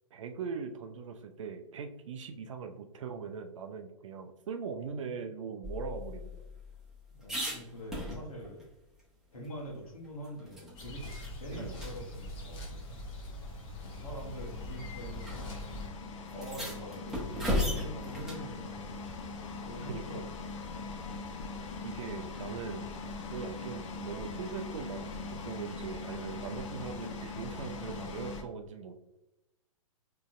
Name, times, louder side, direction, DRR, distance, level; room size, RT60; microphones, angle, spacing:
voice 1, 0.1-6.5 11.5-11.9 19.9-20.2 21.8-22.9 23.3-28.9, right 6 dB, 60° right, 6 dB, 0.5 m, -41 dB
sound 1, 5.6-8.6 9.0-9.1 9.4-10.9 11.2-11.4 11.7-11.9 13.0-13.1 13.9-14.2 15.2-15.4 15.6-15.7 16.3-18.5 20.8-21.2, left 1 dB, 5° right, 1.0 m, -36 dB
voice 2, 7.1-8.7 9.3-11.1 11.4-12.7 13.8-15.5 16.3-18.9 19.6-20.3 20.7-21.0, equal, 85° left, -3 dB, 1.2 m, -44 dB
sound 2, 10.8-15.9, left 1 dB, 30° left, 0.9 m, -42 dB
sound 3, 13.6-28.4, left 3 dB, 60° left, 0.7 m, -42 dB
3.8 x 3.2 x 2.5 m, 0.90 s
figure-of-eight pair, 115°, 18 cm